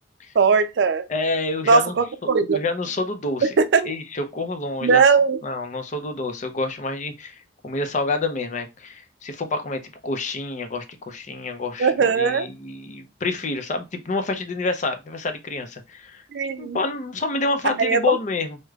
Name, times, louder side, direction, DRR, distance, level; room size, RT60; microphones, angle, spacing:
voice 1, 0.4-1.0 1.7-2.6 3.6-3.8 4.8-5.4 11.8-12.5 16.3-16.8 17.6-18.2, right 5 dB, 70° right, 0.4 m, -19 dB
voice 2, 1.1-1.9 2.5-3.6 3.8-5.0 5.4-16.2 16.6-18.6, left 3 dB, 40° left, 0.5 m, -28 dB
4.8 x 2.1 x 2.3 m
head